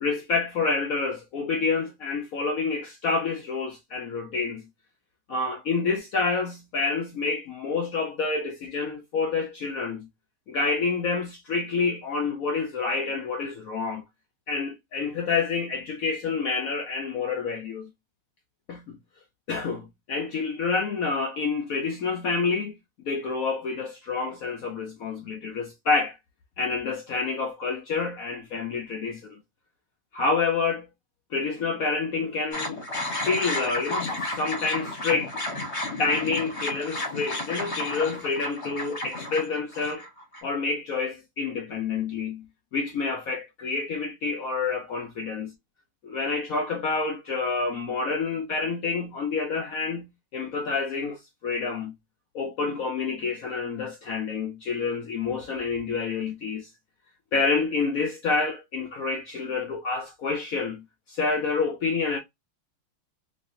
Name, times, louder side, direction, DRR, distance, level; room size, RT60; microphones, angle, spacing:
voice 1, 0.0-4.7 5.3-10.1 10.5-14.0 14.5-17.9 18.7-19.0 19.5-22.7 23.1-26.2 26.6-29.4 30.1-30.9 31.3-32.8 33.2-35.4 36.0-40.1 40.4-42.4 42.7-45.5 46.0-51.9 52.3-56.7 57.3-60.8 61.1-62.2, left 4 dB, 80° left, 0.7 m, -28 dB
sound 1, 32.5-40.4, left 2 dB, 40° left, 1.3 m, -32 dB
3.1 x 2.8 x 2.6 m
omnidirectional pair, 2.4 m